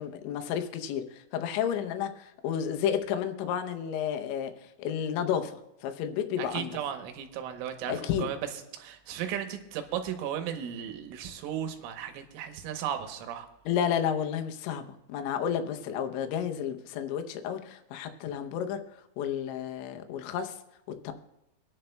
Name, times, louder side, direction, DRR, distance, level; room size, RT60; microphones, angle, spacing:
voice 1, 0.0-5.5 5.8-6.7 7.9-8.3 13.7-14.8 15.1-18.8 19.2-20.6 21.0-21.1, left 8 dB, 80° left, 6 dB, 3.1 m, -31 dB
voice 2, 6.4-8.4 8.7-13.5, right 9 dB, 85° right, 7 dB, 3.5 m, -35 dB
25.0 x 10.5 x 2.2 m, 0.88 s
omnidirectional pair, 5.6 m